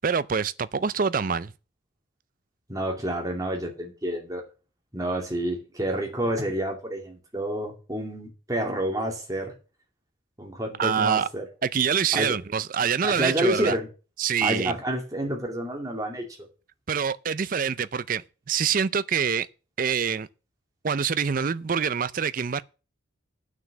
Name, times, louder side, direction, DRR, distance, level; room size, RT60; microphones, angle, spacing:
voice 1, 0.0-1.5 10.8-11.3 11.6-13.8 14.2-14.8 16.9-19.5 19.8-20.3 20.8-22.6, right 6 dB, 45° right, 0.4 m, -25 dB
voice 2, 2.7-4.4 4.9-9.5 10.4-11.4 12.1-12.4 13.0-13.9 14.4-16.5, right 1 dB, 15° right, 2.4 m, -29 dB
9.5 x 6.2 x 7.2 m
head